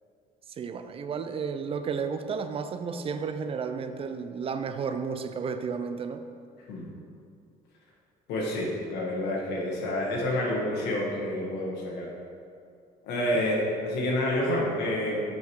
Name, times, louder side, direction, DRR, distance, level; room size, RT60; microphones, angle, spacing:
voice 1, 0.6-6.2, right 5 dB, 35° right, 9 dB, 0.4 m, -32 dB
voice 2, 8.3-12.1 13.0-15.3, left 1 dB, 90° left, -3 dB, 1.2 m, -28 dB
5.8 x 4.7 x 4.6 m, 2.4 s
cardioid pair, 110°, 17 cm